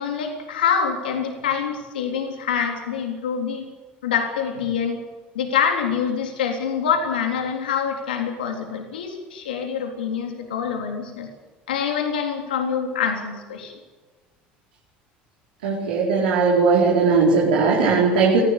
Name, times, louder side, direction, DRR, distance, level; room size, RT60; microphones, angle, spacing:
voice 1, 0.0-3.7 4.0-5.0 5.3-11.3 11.7-13.7, left 7 dB, 90° left, 3 dB, 3.7 m, -25 dB
voice 2, 15.6-18.4, right 4 dB, 85° right, -5 dB, 4.9 m, -18 dB
22.5 x 16.0 x 8.6 m, 1.3 s
hypercardioid pair, 75°, 5 cm